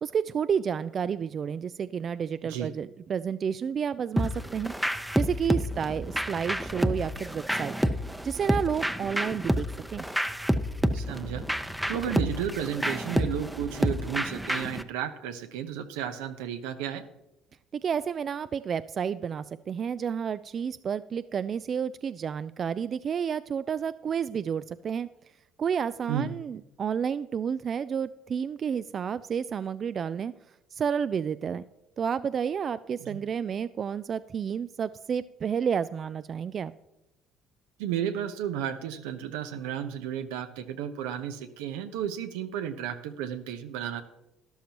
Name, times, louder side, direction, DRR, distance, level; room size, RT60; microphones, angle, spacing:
voice 1, 0.0-7.8 8.2-10.0 17.7-25.1 25.6-30.3 30.7-31.6 32.0-36.7, right 7 dB, 45° right, 15 dB, 0.3 m, -30 dB
sound 1, 4.2-14.8, equal, 5° right, 0.7 m, -29 dB
voice 2, 10.9-11.5 11.9-17.0 26.1-26.3 33.0-33.2 37.8-44.0, right 9 dB, 85° right, 8 dB, 0.8 m, -33 dB
12.5 x 11.5 x 2.9 m, 0.92 s
supercardioid pair, 75°, 0 cm